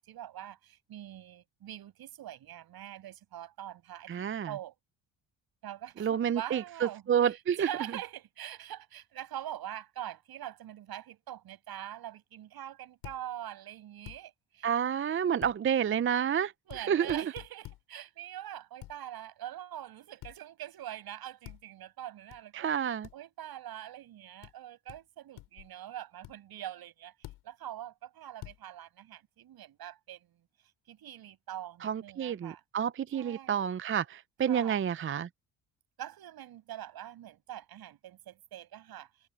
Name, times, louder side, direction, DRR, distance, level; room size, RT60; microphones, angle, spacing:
voice 1, 0.0-4.7 5.6-14.7 16.7-30.4 30.9-32.6 33.1-33.6 34.4-34.8 36.0-39.1, right 12 dB, 70° right, 6.8 m, -44 dB
voice 2, 4.1-4.5 6.0-7.7 14.6-17.2 22.5-23.1 31.8-35.3, right 8 dB, 35° right, 0.6 m, -29 dB
sound 1, 13.0-13.2 14.1-14.2 15.4-15.6 16.7-16.8 17.1-17.8 18.8-19.0 20.2-20.4 21.4-21.6 22.3-22.4 23.0-23.2 24.4-24.5 24.9-25.0 25.4-25.7 26.2-26.3 27.2-27.4 28.4-28.6, left 16 dB, 85° left, 3.6 m, -47 dB
supercardioid pair, 75°, 38 cm